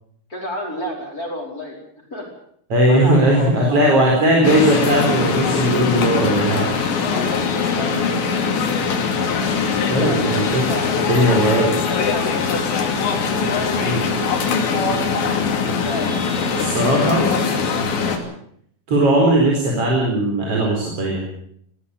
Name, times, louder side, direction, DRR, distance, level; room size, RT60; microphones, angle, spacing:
voice 1, 0.3-1.8 2.1-2.3 2.9-4.1 6.9-8.4 9.7-11.3 11.7-12.8 13.3-15.0 15.6-16.1 16.5-17.4 18.0-18.2, left 1 dB, 20° left, 0 dB, 5.1 m, -31 dB
voice 2, 2.7-6.7 9.9-10.7 11.1-11.7 13.8-14.0 16.6-17.3 18.9-21.2, right 1 dB, 35° right, -1 dB, 5.3 m, -18 dB
sound 1, 4.4-18.2, left 5 dB, 90° left, 5.0 m, -21 dB
22.0 x 15.5 x 8.4 m, 0.67 s
omnidirectional pair, 5.0 m